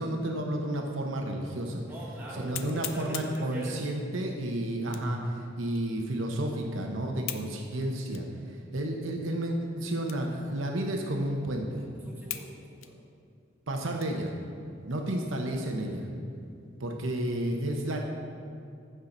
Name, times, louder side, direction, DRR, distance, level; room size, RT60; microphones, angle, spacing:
voice 1, 0.0-1.8 2.3-8.3 8.7-11.8 13.7-14.3 14.8-16.1 16.8-18.0, right 1 dB, 75° right, 2 dB, 1.0 m, -31 dB
sound 1, 1.2-1.3 1.8-1.9 2.5-3.5 4.8-5.2 5.8-5.9 7.2-7.5 8.1-8.3 8.9-9.0 10.0-10.4 10.7-10.8 11.4-11.5 12.3-12.5 12.8-14.3 14.8-15.0 15.4-15.9, left 11 dB, 80° left, 0.6 m, -40 dB
voice 2, 1.9-3.8 12.0-13.0, right 1 dB, 10° right, -6 dB, 1.7 m, -42 dB
14.5 x 5.7 x 4.0 m, 2.5 s
head